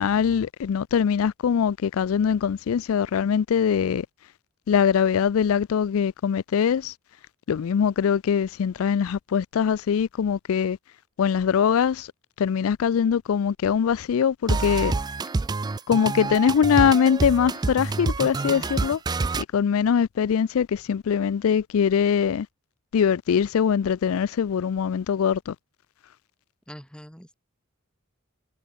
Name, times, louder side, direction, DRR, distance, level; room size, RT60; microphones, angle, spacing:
voice 1, 0.0-4.1 4.7-6.9 7.5-10.8 11.2-12.1 12.4-14.9 15.9-19.0 19.5-22.5 22.9-25.6, left 7 dB, 85° left, 0.4 m, -22 dB
sound 1, 14.5-19.4, right 3 dB, 20° right, 0.3 m, -27 dB
voice 2, 26.7-27.3, equal, 5° left, 3.7 m, -43 dB
head